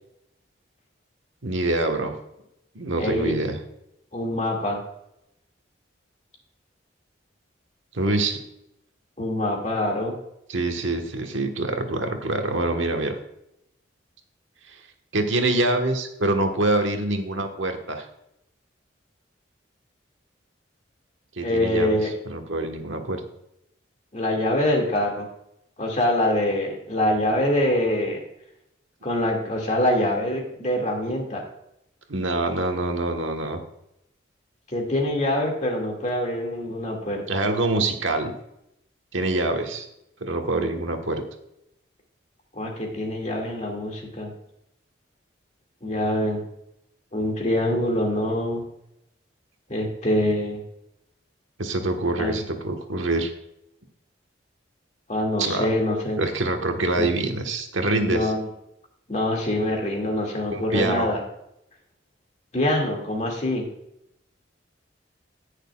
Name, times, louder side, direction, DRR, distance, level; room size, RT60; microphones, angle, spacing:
voice 1, 1.4-2.1 2.7-3.6 7.9-8.4 10.5-13.2 14.7-14.8 15.1-18.1 21.4-23.2 32.1-33.6 37.3-38.3 39.1-39.9 40.2-41.2 51.6-53.3 55.4-55.7 56.2-58.3 60.5-61.1, right 2 dB, 85° right, 4 dB, 1.3 m, -25 dB
voice 2, 3.0-3.3 4.1-4.8 9.2-10.2 21.4-22.1 24.1-25.3 25.8-28.2 29.0-31.4 34.7-37.4 42.5-44.3 45.8-46.4 47.1-48.6 49.7-50.6 52.2-52.4 55.1-56.2 57.0-57.1 58.0-58.5 59.1-61.2 62.5-63.6, left 1 dB, 35° left, 0 dB, 2.1 m, -24 dB
18.0 x 6.6 x 2.3 m, 0.81 s
head